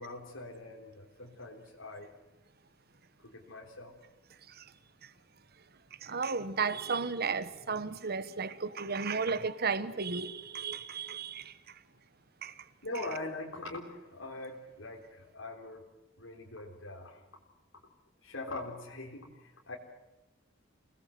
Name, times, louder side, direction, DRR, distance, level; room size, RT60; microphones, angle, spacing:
voice 1, 0.0-2.1 3.2-4.0 12.8-15.8 16.2-17.2 18.2-19.7, left 2 dB, 90° left, 3.9 m, -42 dB
voice 2, 6.0-11.8 12.4-12.7, right 5 dB, 50° right, 1.2 m, -34 dB
28.5 x 19.5 x 7.8 m
head